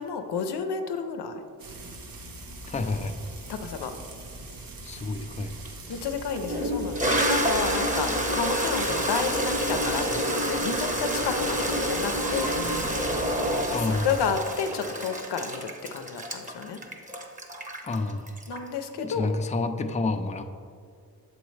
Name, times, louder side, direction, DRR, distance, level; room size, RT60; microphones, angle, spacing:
voice 1, 0.0-1.4 3.5-3.9 5.9-12.6 13.6-16.8 18.5-19.3, left 6 dB, 85° left, 6 dB, 0.5 m, -31 dB
Frying (food), 1.6-14.4, equal, 60° right, 0.8 m, -41 dB
voice 2, 2.7-3.2 4.8-5.6 13.7-14.1 17.8-18.4 19.0-20.4, left 3 dB, 20° left, 7 dB, 0.4 m, -29 dB
Toilet flush, 5.6-5.7 6.4-18.8, right 1 dB, 20° right, 0.9 m, -28 dB
6.9 x 4.6 x 3.2 m, 2.3 s
cardioid pair, 45°, 39 cm